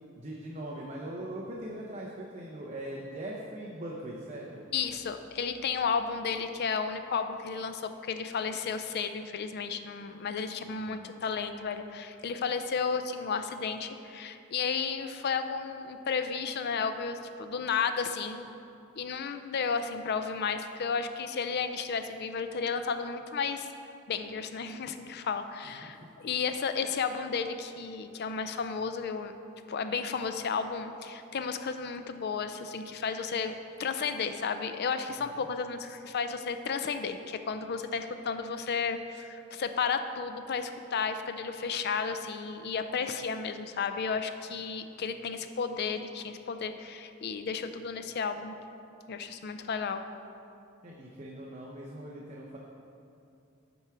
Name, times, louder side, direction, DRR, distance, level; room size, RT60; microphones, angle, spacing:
voice 1, 0.2-4.7 10.7-11.1 25.6-26.0 26.2-26.3 50.8-52.6, right 1 dB, 35° right, -3 dB, 0.7 m, -41 dB
voice 2, 4.7-18.5 19.0-23.7 24.1-29.3 29.7-33.5 33.8-48.6 49.1-50.0, left 5 dB, 50° left, 9 dB, 0.4 m, -33 dB
8.0 x 4.7 x 5.7 m, 2.6 s
head